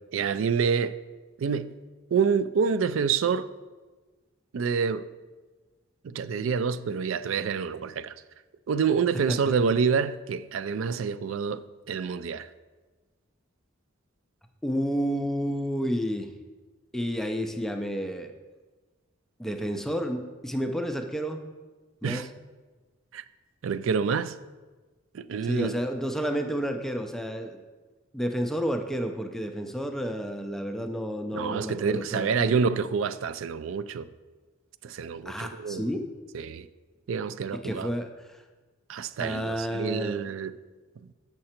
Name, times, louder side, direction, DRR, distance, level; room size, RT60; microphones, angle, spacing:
voice 1, 0.1-0.9 1.4-1.7 2.1-3.5 4.5-5.1 6.0-8.1 8.7-12.5 22.0-22.3 23.1-23.2 23.6-24.3 25.1-25.8 31.3-34.1 34.8-35.9 36.3-36.7 37.1-37.9 38.9-40.5, right 6 dB, 75° right, 0.4 m, -27 dB
voice 2, 14.6-16.3 16.9-18.3 19.4-21.4 22.0-22.3 25.4-27.6 28.1-32.6 35.3-36.1 37.6-38.4 39.2-40.2, equal, ahead, 0.4 m, -30 dB
7.6 x 5.9 x 4.3 m
head